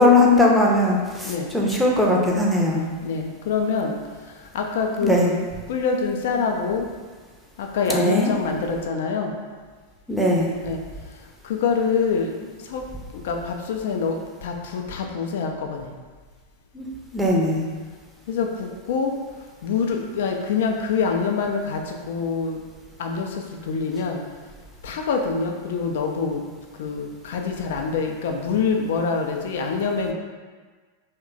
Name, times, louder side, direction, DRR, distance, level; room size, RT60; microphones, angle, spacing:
voice 1, 0.0-2.9 5.0-5.3 7.9-8.3 10.1-10.5 16.7-16.9 17.1-17.6, left 1 dB, 5° right, -2 dB, 0.6 m, -19 dB
voice 2, 3.0-3.9 4.2-5.3 5.7-6.9 7.6-9.4 10.6-10.8 11.4-12.8 13.2-15.9 18.3-19.2 19.6-22.6 23.0-24.2 24.8-26.4 26.8-30.1, left 5 dB, 55° left, 3 dB, 0.3 m, -25 dB
3.0 x 2.1 x 3.8 m, 1.4 s
figure-of-eight pair, 90°, 0 cm